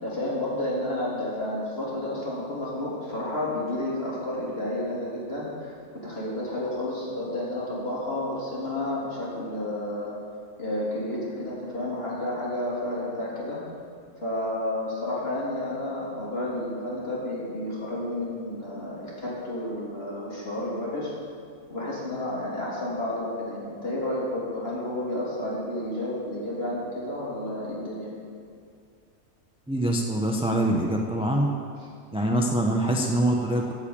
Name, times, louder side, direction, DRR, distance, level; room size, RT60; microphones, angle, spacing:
voice 1, 0.0-5.7 6.0-10.2 10.6-13.6 14.2-21.1 21.7-28.1, left 1 dB, 50° left, -6 dB, 3.3 m, -31 dB
voice 2, 29.7-31.5 32.1-33.7, right 1 dB, 5° right, 1 dB, 0.7 m, -24 dB
13.0 x 5.6 x 8.5 m, 2.3 s
omnidirectional pair, 1.4 m